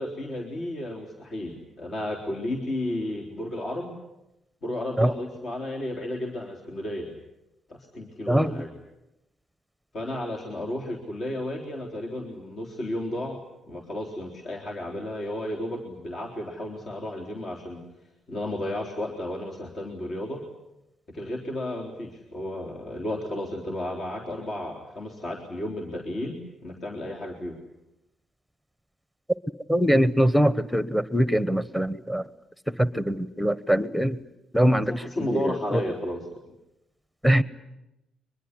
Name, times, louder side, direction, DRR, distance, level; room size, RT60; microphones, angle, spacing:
voice 1, 0.0-3.9 4.6-7.1 7.7-8.7 9.9-13.4 13.7-17.8 18.3-20.4 21.1-27.6 34.9-36.2 36.5-36.6, left 1 dB, 50° left, 1 dB, 3.7 m, -33 dB
voice 2, 29.7-32.2 32.7-34.2 34.5-35.8 37.2-37.4, equal, ahead, 15 dB, 1.2 m, -23 dB
23.5 x 21.5 x 10.0 m, 0.90 s
cardioid pair, 90°, 0 cm